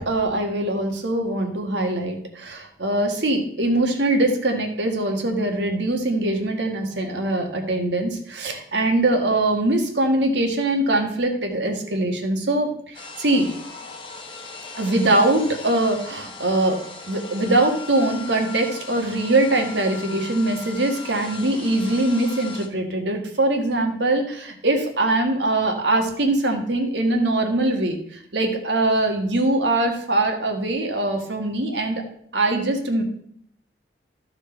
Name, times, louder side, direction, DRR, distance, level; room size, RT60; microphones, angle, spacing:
voice 1, 0.0-13.5 14.8-16.8 17.1-32.0 32.3-33.0, right 2 dB, 75° right, 3 dB, 1.5 m, -22 dB
sound 1, 12.9-22.7, left 5 dB, 30° left, 1.1 m, -38 dB
13.5 x 4.9 x 4.4 m, 0.66 s
head